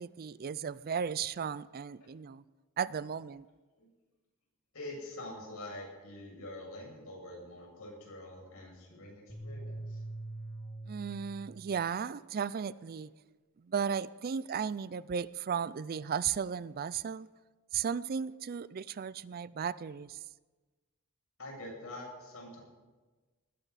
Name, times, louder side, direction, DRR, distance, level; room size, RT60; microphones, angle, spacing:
voice 1, 0.0-2.4 2.8-3.5 10.9-13.1 13.6-17.3 17.7-20.2, right 7 dB, 40° right, 0.4 m, -35 dB
voice 2, 4.7-10.0 21.4-22.6, left 1 dB, 70° left, 7.2 m, -45 dB
sound 1, 9.3-11.8, right 2 dB, 10° left, 2.0 m, -43 dB
19.5 x 17.0 x 4.2 m
head